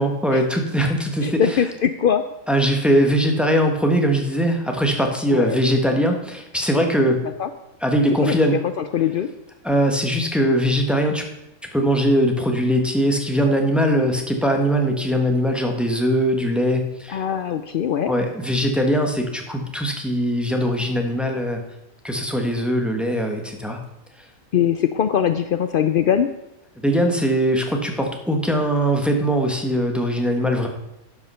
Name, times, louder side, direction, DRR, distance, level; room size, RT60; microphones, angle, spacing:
voice 1, 0.0-1.6 2.5-7.2 7.8-8.6 9.6-11.2 11.7-17.2 18.1-21.6 22.0-23.8 26.8-30.7, equal, ahead, 2 dB, 1.3 m, -21 dB
voice 2, 1.2-2.2 5.3-5.6 7.4-7.5 8.2-8.4 8.8-9.3 17.1-18.1 24.5-26.3, left 9 dB, 70° left, 10 dB, 0.5 m, -21 dB
12.0 x 8.4 x 5.6 m, 0.89 s
omnidirectional pair, 1.5 m